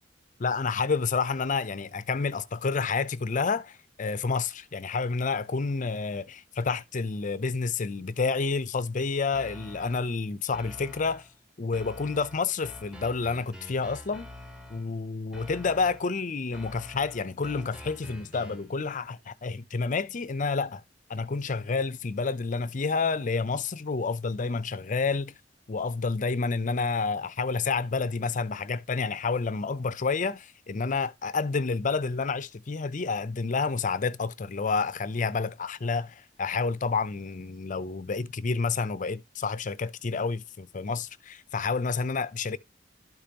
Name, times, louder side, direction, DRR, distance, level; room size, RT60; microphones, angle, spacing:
voice 1, 0.4-11.2 11.6-14.3 14.7-20.8 21.1-25.3 25.7-42.6, left 4 dB, 45° left, 0.6 m, -29 dB
sound 1, 9.3-10.1 10.5-11.3 11.7-14.9 15.3-16.1 16.5-18.7, left 1 dB, 5° right, 1.1 m, -46 dB
12.5 x 5.1 x 2.9 m
head